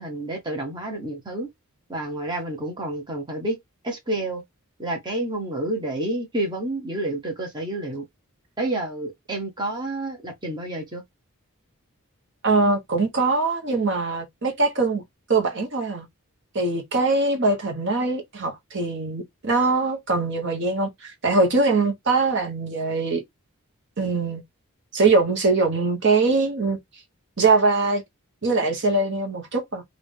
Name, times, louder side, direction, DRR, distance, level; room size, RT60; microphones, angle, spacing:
voice 1, 0.0-1.5 1.9-3.6 3.8-4.4 4.8-8.0 8.6-11.0, right 1 dB, 20° right, 1.0 m, -29 dB
voice 2, 12.4-15.0 15.3-16.1 16.5-23.2 24.0-24.4 24.9-26.8 27.4-28.0 28.4-29.8, right 3 dB, 55° right, 1.0 m, -22 dB
3.7 x 2.5 x 3.5 m
head